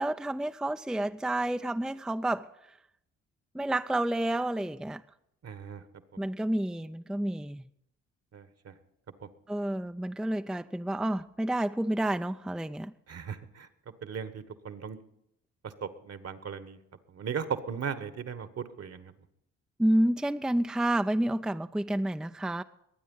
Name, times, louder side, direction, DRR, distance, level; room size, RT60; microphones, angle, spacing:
voice 1, 0.0-2.8 3.5-5.0 6.2-7.6 9.5-12.9 19.8-22.6, right 1 dB, ahead, 9 dB, 0.5 m, -29 dB
voice 2, 5.4-5.8 8.3-8.7 13.1-13.7 14.0-15.0 15.6-16.8 17.1-19.1, right 7 dB, 50° right, 13 dB, 1.4 m, -37 dB
22.0 x 9.2 x 5.5 m, 0.77 s
hypercardioid pair, 50°, 31 cm